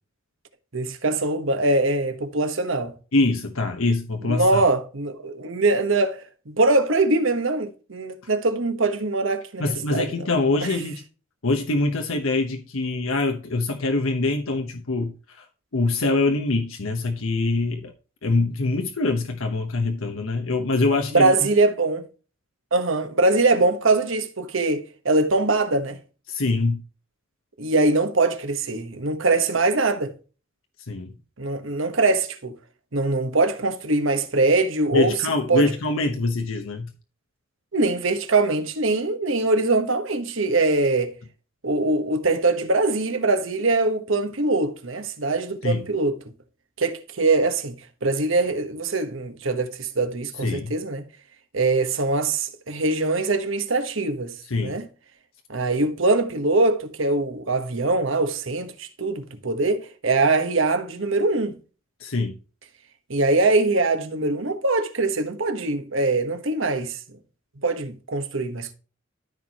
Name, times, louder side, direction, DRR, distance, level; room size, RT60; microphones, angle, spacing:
voice 1, 0.7-2.9 4.2-10.1 21.1-22.0 22.7-26.0 27.6-30.1 31.4-32.5 32.9-35.1 35.5-35.7 37.7-41.1 41.6-46.2 46.8-51.0 51.5-54.3 54.6-54.9 55.5-61.5 63.1-67.0 67.6-68.7, right 2 dB, 70° right, 1.2 m, -22 dB
voice 2, 3.1-4.6 9.6-11.0 11.4-15.4 15.7-17.9 18.2-21.5 26.3-26.8 30.9-31.1 34.9-36.9 45.6-45.9 50.4-50.7 54.5-54.8 62.0-62.3, left 2 dB, 85° left, 1.0 m, -24 dB
13.5 x 4.6 x 2.9 m
head